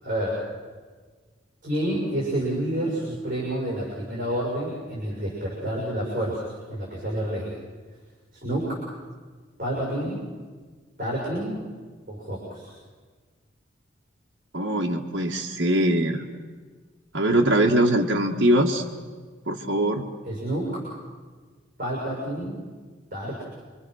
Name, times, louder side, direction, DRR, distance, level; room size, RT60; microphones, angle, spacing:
voice 1, 0.0-0.4 1.6-7.5 8.3-8.8 9.6-10.2 11.0-11.5 12.1-12.7 20.2-20.8 21.8-22.6 23.1-23.4, right 1 dB, 40° right, -3 dB, 6.3 m, -29 dB
voice 2, 14.5-16.2 17.1-18.8 19.5-20.0, right 1 dB, 60° right, -2 dB, 1.7 m, -22 dB
27.5 x 24.0 x 6.4 m, 1.5 s
head